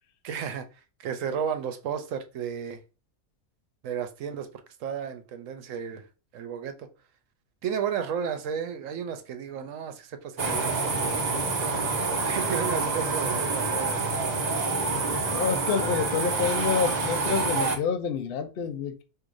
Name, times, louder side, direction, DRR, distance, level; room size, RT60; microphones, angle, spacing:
voice 1, 0.2-0.7 1.0-2.8 3.8-4.5 4.8-6.1 6.3-6.9 7.6-11.2 12.2-14.0, right 7 dB, 70° right, 1.0 m, -33 dB
sound 1, 10.4-17.8, right 3 dB, 45° right, 0.5 m, -27 dB
voice 2, 15.3-19.0, left 6 dB, 60° left, 0.6 m, -28 dB
4.6 x 2.7 x 2.5 m
omnidirectional pair, 1.5 m